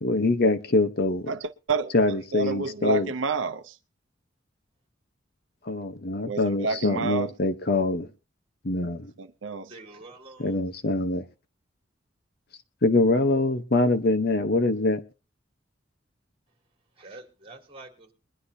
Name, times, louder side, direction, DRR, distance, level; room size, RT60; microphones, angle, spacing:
voice 1, 0.0-1.3 1.9-3.1 5.6-8.1 8.6-9.1 10.4-11.2 12.8-15.0, left 2 dB, 55° left, 0.9 m, -24 dB
voice 2, 1.3-1.9 2.3-3.8 6.3-7.3 9.2-9.7, right 4 dB, 80° right, 0.7 m, -29 dB
voice 3, 9.7-10.7 16.9-18.1, right 2 dB, 30° right, 3.0 m, -47 dB
22.0 x 11.5 x 2.8 m
head